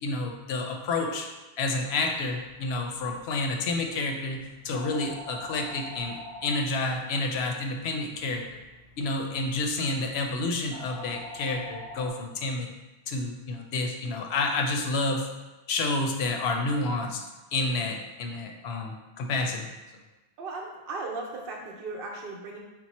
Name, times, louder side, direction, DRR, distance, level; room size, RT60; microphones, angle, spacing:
voice 1, 0.0-1.3 1.6-8.6 9.0-12.7 13.1-15.3 15.7-17.2 17.5-19.7, left 2 dB, 70° left, 3 dB, 0.8 m, -29 dB
sound 1, 1.8-12.1, left 2 dB, 25° left, 0.4 m, -47 dB
voice 2, 20.4-22.6, right 3 dB, 60° right, 0 dB, 0.9 m, -36 dB
4.4 x 2.0 x 4.1 m, 1.1 s
omnidirectional pair, 1.1 m